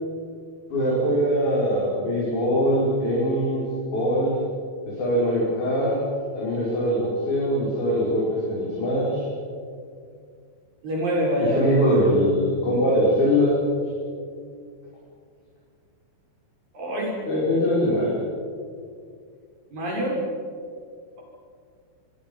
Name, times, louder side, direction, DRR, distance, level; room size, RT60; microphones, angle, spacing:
voice 1, 0.7-3.6 3.9-4.3 5.0-6.0 6.3-9.2 11.5-13.6 17.3-18.1, equal, 40° left, -7 dB, 6.7 m, -22 dB
voice 2, 10.8-11.6 16.7-17.2 19.7-20.2, equal, 45° right, -2 dB, 7.6 m, -25 dB
26.5 x 22.5 x 5.6 m, 2.2 s
omnidirectional pair, 5.9 m